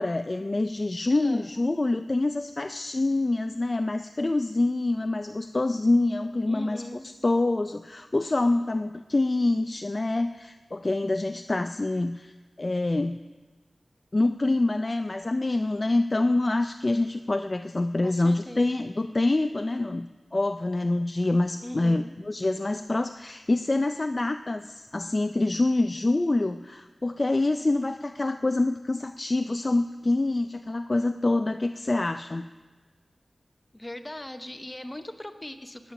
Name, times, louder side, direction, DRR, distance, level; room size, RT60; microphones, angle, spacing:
voice 1, 0.0-6.8 7.2-13.2 14.1-20.1 20.3-32.4, left 2 dB, 35° left, 8 dB, 0.4 m, -26 dB
voice 2, 1.1-1.5 6.5-7.1 18.0-18.7 21.6-22.1 33.7-35.9, left 1 dB, 20° left, 7 dB, 0.8 m, -39 dB
13.5 x 9.6 x 6.0 m, 1.3 s
wide cardioid pair, 80°, 0 cm